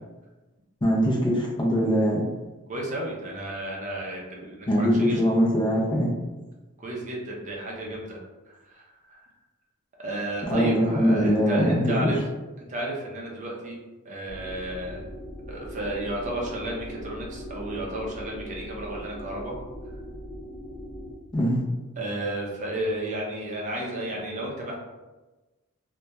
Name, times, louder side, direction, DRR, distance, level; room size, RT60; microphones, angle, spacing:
voice 1, 0.8-2.2 4.7-6.1 10.5-12.1 21.3-21.7, equal, 20° left, -3 dB, 0.4 m, -22 dB
voice 2, 2.7-5.4 6.8-8.2 8.5-9.3 10.0-12.2 12.6-13.8 14.0-15.1 15.5-19.5 22.0-24.7, right 1 dB, 35° right, -2 dB, 0.5 m, -32 dB
sound 1, 14.3-21.1, equal, 60° left, 0.6 m, -40 dB
2.8 x 2.2 x 2.2 m, 1.2 s
head